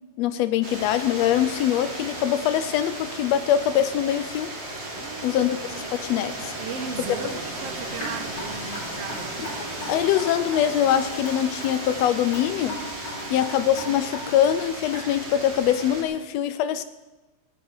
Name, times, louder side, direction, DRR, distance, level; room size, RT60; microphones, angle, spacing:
voice 1, 0.2-4.5 5.2-6.5 7.2-7.4 9.9-12.8 13.3-16.8, left 10 dB, 80° left, 13 dB, 1.6 m, -23 dB
sound 1, 0.6-16.0, right 1 dB, 25° right, 2.5 m, -35 dB
voice 2, 4.9-5.5 5.9-6.1 6.6-9.3 13.1-13.5, right 7 dB, 70° right, 8 dB, 1.5 m, -37 dB
sound 2, 6.4-11.5, right 3 dB, 45° right, 1.5 m, -45 dB
Raindrop / Drip, 8.0-15.3, left 1 dB, 35° left, 4.9 m, -38 dB
16.0 x 11.0 x 4.7 m, 1.2 s
omnidirectional pair, 3.4 m